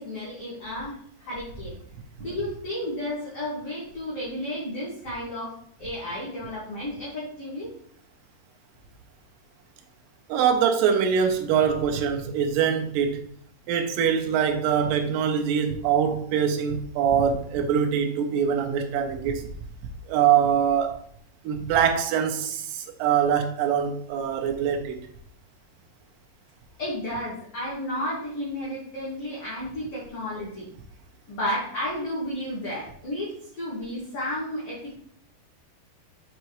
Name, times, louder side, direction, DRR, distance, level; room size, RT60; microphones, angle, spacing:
voice 1, 0.0-1.8 2.2-7.7 26.8-30.7 31.3-35.0, left 1 dB, 50° left, -7 dB, 2.2 m, -32 dB
voice 2, 10.3-13.2 13.7-19.5 20.1-21.0 21.4-25.0, right 8 dB, 75° right, 4 dB, 2.1 m, -23 dB
6.5 x 5.7 x 3.0 m, 0.62 s
omnidirectional pair, 4.6 m